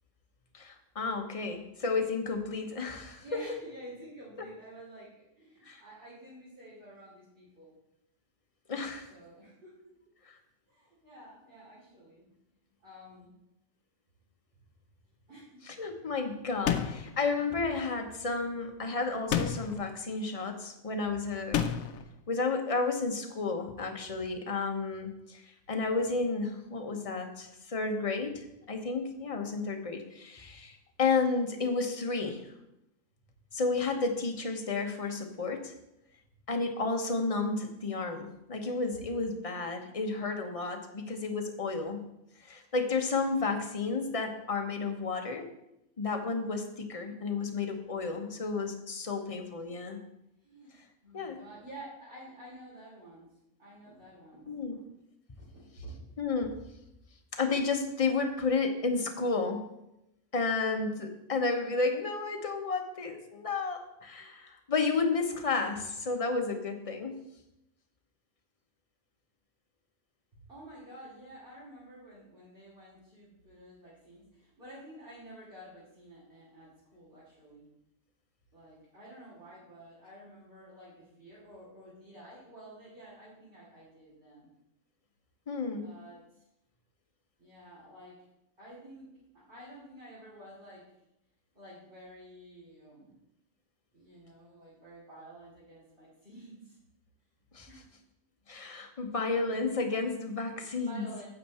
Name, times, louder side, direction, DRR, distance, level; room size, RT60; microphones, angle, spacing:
voice 1, 0.5-3.2 5.7-5.8 8.7-9.1 10.3-10.4 15.7-21.6 22.3-25.4 25.7-32.5 33.5-35.7 36.5-42.0 42.4-45.5 46.0-50.0 51.1-51.4 54.5-54.8 56.2-56.6 57.3-59.7 60.3-67.1 85.5-85.9 97.5-97.7 98.5-101.1, left 4 dB, 30° left, 4 dB, 1.0 m, -32 dB
voice 2, 3.2-7.7 9.1-9.7 10.7-12.2 12.8-13.4 15.3-15.6 48.0-48.3 50.4-50.7 51.0-53.3 53.6-54.9 55.4-55.9 70.5-77.7 78.5-84.5 85.7-86.4 87.4-88.1 88.6-89.1 89.3-90.8 91.5-93.2 93.9-96.8 97.7-97.9 100.8-101.3, right 1 dB, 40° right, -8 dB, 3.3 m, -50 dB
sound 1, 16.7-17.2 19.3-19.8 21.5-22.0, left 8 dB, 90° left, 1.1 m, -29 dB
9.1 x 8.0 x 4.3 m, 0.85 s
omnidirectional pair, 1.4 m